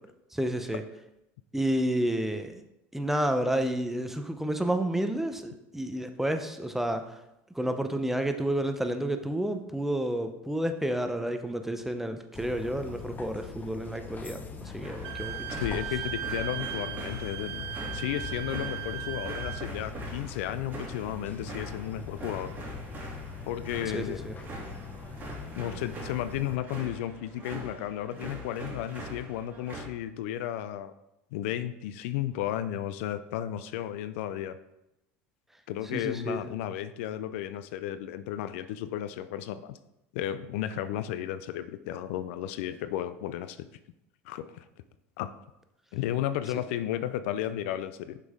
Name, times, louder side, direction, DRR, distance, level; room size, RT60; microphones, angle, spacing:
voice 1, 0.3-0.8 1.5-2.6 2.9-7.2 7.5-15.6 23.9-24.4 35.9-36.4, right 1 dB, 5° right, 7 dB, 0.6 m, -30 dB
sound 1, 12.3-26.6, left 5 dB, 25° left, 0.8 m, -42 dB
sound 2, 14.8-29.8, right 1 dB, 30° right, 2.3 m, -43 dB
Wind instrument woodwind instrument, 15.0-19.7, right 13 dB, 60° right, 0.5 m, -37 dB
voice 2, 15.5-22.5 23.5-24.3 25.6-30.9 31.3-34.6 35.7-39.8 40.1-43.7 44.3-44.6 45.2-45.3 45.9-48.2, left 12 dB, 75° left, 13 dB, 0.4 m, -33 dB
6.2 x 5.3 x 3.6 m, 0.88 s
supercardioid pair, 100°, 7 cm